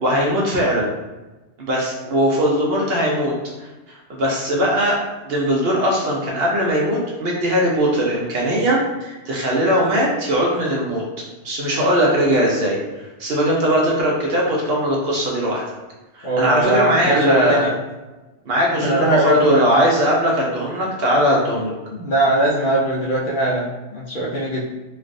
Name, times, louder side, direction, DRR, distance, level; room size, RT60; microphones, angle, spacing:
voice 1, 0.0-0.9 1.7-3.3 3.9-11.0 11.4-15.6 16.2-17.7 18.5-21.7, equal, 60° right, -3 dB, 0.8 m, -20 dB
voice 2, 16.2-17.7 18.8-19.6 21.9-24.6, right 1 dB, 55° left, -5 dB, 0.6 m, -20 dB
3.2 x 2.4 x 2.5 m, 1.1 s
omnidirectional pair, 1.3 m